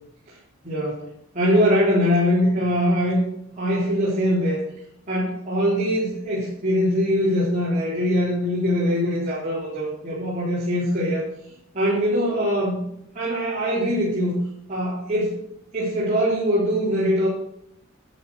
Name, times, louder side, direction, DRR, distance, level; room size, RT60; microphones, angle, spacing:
voice 1, 0.6-1.0 1.3-3.2 3.6-4.6 5.1-11.2 11.7-12.9 13.1-14.4 14.7-15.4 15.7-17.3, equal, 35° right, -9 dB, 4.2 m, -22 dB
11.0 x 7.6 x 7.7 m, 0.76 s
head